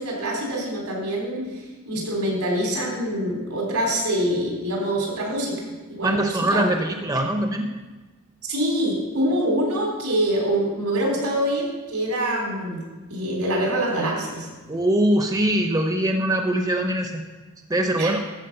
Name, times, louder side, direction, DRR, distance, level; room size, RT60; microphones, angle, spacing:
voice 1, 0.0-6.7 8.5-12.8 13.1-14.5 18.0-18.2, right 1 dB, 90° right, -2 dB, 3.5 m, -25 dB
voice 2, 6.0-7.7 14.7-17.2 17.7-18.2, right 1 dB, 15° right, 4 dB, 0.6 m, -22 dB
13.5 x 4.8 x 6.6 m, 1.3 s
head